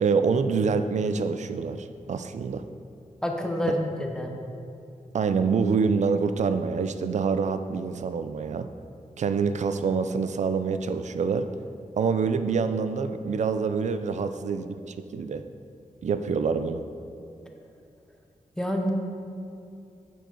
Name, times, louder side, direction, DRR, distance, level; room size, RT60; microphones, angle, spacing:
voice 1, 0.0-2.6 5.1-8.7 9.2-11.5 12.0-15.4 16.0-16.8, right 5 dB, 55° right, 10 dB, 0.4 m, -26 dB
voice 2, 3.2-4.3 18.6-18.9, left 1 dB, 5° left, 2 dB, 0.7 m, -28 dB
8.0 x 4.6 x 4.4 m, 2.6 s
wide cardioid pair, 130°, 14 cm